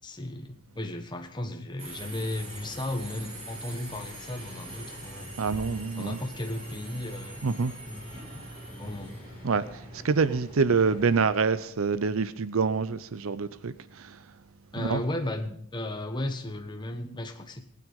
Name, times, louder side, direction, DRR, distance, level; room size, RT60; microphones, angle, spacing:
voice 1, 0.0-5.3 6.0-7.5 7.9-8.3 8.7-9.2 14.7-17.7, left 1 dB, 20° left, 1.3 m, -35 dB
Subway metro underground, 1.8-11.2, right 1 dB, 25° right, 6.6 m, -43 dB
voice 2, 5.4-6.2 7.4-7.7 9.4-14.2 14.8-15.0, right 5 dB, 70° right, 0.6 m, -26 dB
19.0 x 9.3 x 5.3 m
head